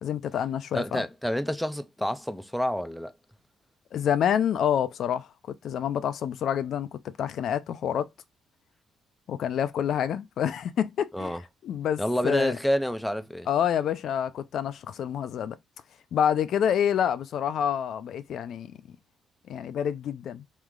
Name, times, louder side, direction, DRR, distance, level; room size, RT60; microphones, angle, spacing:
voice 1, 0.0-1.0 3.9-5.3 5.6-6.9 7.2-8.1 9.3-11.4 11.6-12.5 13.5-15.6 16.1-18.7 19.5-20.4, left 9 dB, 70° left, 0.4 m, -27 dB
voice 2, 0.7-3.1 11.1-11.4 12.0-13.5, equal, ahead, 0.5 m, -28 dB
3.2 x 3.1 x 3.6 m
cardioid pair, 90°, 0 cm